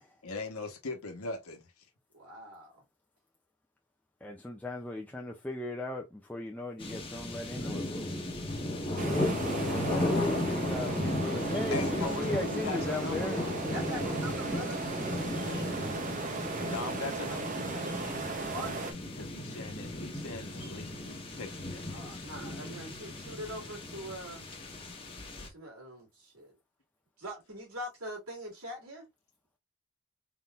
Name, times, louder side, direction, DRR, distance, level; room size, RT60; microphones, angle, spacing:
voice 1, 0.2-1.7 11.7-13.3 16.6-17.6 19.2-22.3, left 3 dB, 75° left, 1.0 m, -40 dB
voice 2, 2.1-2.8 7.6-7.8 13.7-14.8 17.1-17.9 18.4-18.9 21.9-24.5 25.5-26.5 27.2-29.1, equal, 80° right, 2.4 m, -43 dB
voice 3, 4.2-8.4 9.8-13.5, left 2 dB, 5° left, 0.4 m, -38 dB
sound 1, 6.8-25.5, left 1 dB, 25° left, 1.0 m, -35 dB
sound 2, 9.0-18.9, right 3 dB, 35° right, 0.7 m, -37 dB
4.0 x 3.8 x 2.4 m
head